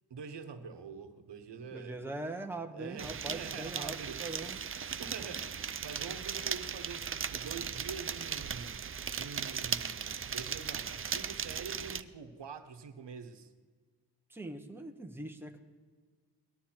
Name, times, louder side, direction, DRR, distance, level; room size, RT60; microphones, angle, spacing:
voice 1, 0.1-2.0 2.7-5.6 5.8-13.5, right 5 dB, 85° right, 1.1 m, -46 dB
voice 2, 1.7-4.6 14.3-15.6, right 2 dB, 5° right, 0.9 m, -41 dB
sound 1, 3.0-12.0, right 7 dB, 35° right, 0.4 m, -37 dB
19.0 x 12.0 x 4.4 m
wide cardioid pair, 145°, 41 cm